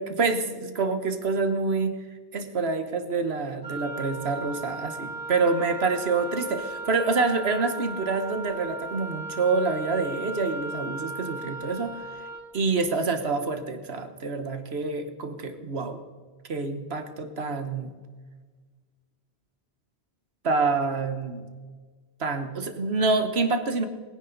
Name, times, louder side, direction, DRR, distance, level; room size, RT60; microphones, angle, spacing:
voice 1, 0.0-2.0 2.3-12.0 12.5-16.0 16.5-17.9 20.4-21.5 22.2-23.9, right 3 dB, 75° right, 8 dB, 1.5 m, -27 dB
Wind instrument woodwind instrument, 3.6-12.5, right 3 dB, 20° left, 3.8 m, -36 dB
21.5 x 10.5 x 4.0 m, 1.5 s
omnidirectional pair, 1.1 m